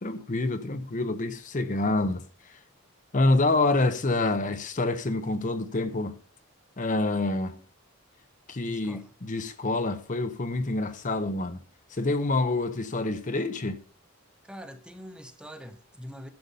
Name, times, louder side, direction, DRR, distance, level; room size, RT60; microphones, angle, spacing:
voice 1, 0.0-2.6 3.1-6.1 6.8-7.6 8.5-11.6 11.9-13.8, left 2 dB, 35° left, 0.7 m, -27 dB
voice 2, 8.6-9.1 14.4-16.3, equal, 5° right, 0.8 m, -43 dB
12.0 x 6.9 x 5.4 m
head